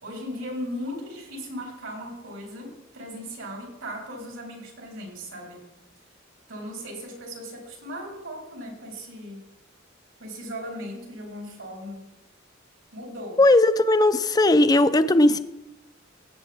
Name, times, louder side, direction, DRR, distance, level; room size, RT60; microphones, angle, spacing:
voice 1, 0.0-5.6 6.5-9.4 10.2-12.0 12.9-13.4, equal, 85° right, -1 dB, 3.9 m, -37 dB
voice 2, 13.4-15.4, left 2 dB, 20° left, 13 dB, 0.4 m, -18 dB
16.5 x 8.0 x 3.5 m, 0.96 s
head